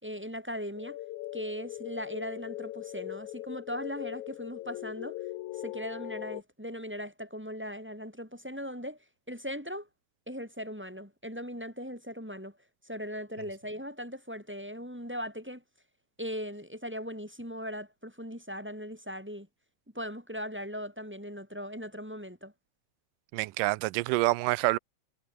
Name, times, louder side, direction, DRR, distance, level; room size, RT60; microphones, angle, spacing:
voice 1, 0.0-1.0 1.3-5.2 5.6-9.0 9.3-9.9 10.3-12.5 12.8-15.6 16.2-19.5 19.9-22.5, equal, 5° right, 3.5 m, -39 dB
sound 1, 0.8-6.4, left 16 dB, 90° left, 1.7 m, -40 dB
voice 2, 23.3-24.8, right 21 dB, 80° right, 2.0 m, -27 dB
omnidirectional pair, 4.5 m